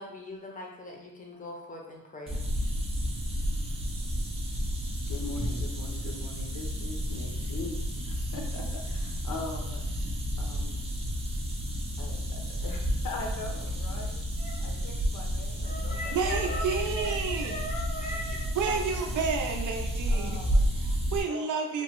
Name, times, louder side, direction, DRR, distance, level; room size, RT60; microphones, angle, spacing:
voice 1, 0.0-2.5 14.4-14.6 15.6-18.5 19.4-19.5, left 1 dB, 25° left, -1 dB, 0.5 m, -39 dB
sound 1, 2.3-21.2, equal, 20° right, 0.4 m, -31 dB
voice 2, 5.1-9.8 10.4-10.8 12.0-14.2 14.6-17.1 18.7-19.4 20.1-20.7 21.3-21.8, left 3 dB, 75° left, 1 dB, 0.7 m, -42 dB
voice 3, 16.1-17.6 18.6-20.4 20.8-21.8, right 5 dB, 75° right, 2 dB, 0.5 m, -30 dB
3.0 x 2.1 x 2.9 m, 0.94 s
wide cardioid pair, 130°, 31 cm